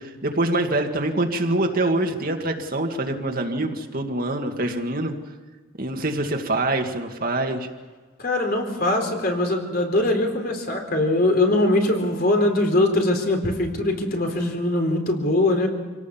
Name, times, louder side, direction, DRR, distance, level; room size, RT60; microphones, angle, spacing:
voice 1, 0.0-5.1 5.8-7.7, right 2 dB, 45° right, 4 dB, 2.1 m, -25 dB
voice 2, 8.2-15.7, left 2 dB, 50° left, 3 dB, 4.1 m, -22 dB
27.0 x 18.0 x 7.3 m, 1.4 s
head